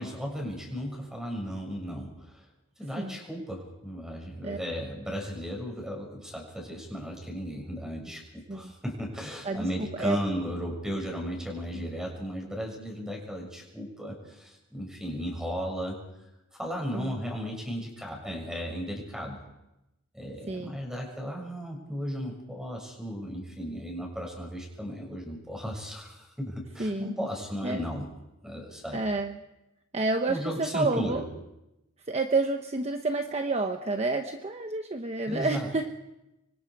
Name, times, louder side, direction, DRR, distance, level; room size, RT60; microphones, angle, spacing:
voice 1, 0.0-2.4 2.8-16.0 16.6-19.4 20.1-28.1 28.4-29.0 30.3-31.2 35.3-35.7, equal, 5° right, 0 dB, 6.6 m, -35 dB
voice 2, 9.4-10.2 11.7-11.8 16.9-17.2 20.5-20.8 26.8-27.1 27.6-27.9 28.9-29.4 29.9-31.2 32.1-35.9, right 3 dB, 30° right, 5 dB, 1.0 m, -29 dB
26.5 x 24.5 x 4.9 m, 0.92 s
head